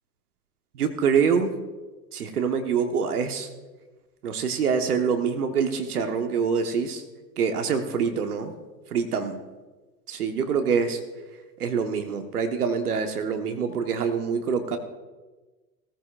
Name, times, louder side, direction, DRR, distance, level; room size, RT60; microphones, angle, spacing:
voice 1, 0.7-1.5 2.1-3.5 4.2-7.0 7.4-8.5 8.9-9.4 10.1-11.0 11.6-14.8, right 6 dB, 60° right, 7 dB, 1.4 m, -25 dB
17.0 x 14.0 x 2.5 m, 1.2 s
figure-of-eight pair, 100°, 50 cm